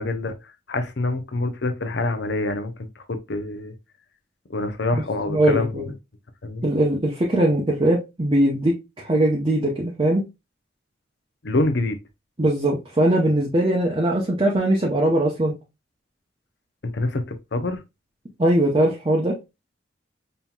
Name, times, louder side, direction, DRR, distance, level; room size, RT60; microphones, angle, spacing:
voice 1, 0.0-3.7 4.5-5.9 6.4-6.6 11.4-12.0 16.8-17.8, left 2 dB, 60° left, 0.6 m, -26 dB
voice 2, 4.9-5.9 6.6-10.3 12.4-15.5 18.4-19.4, right 1 dB, 25° right, 0.7 m, -21 dB
5.4 x 2.9 x 2.3 m
head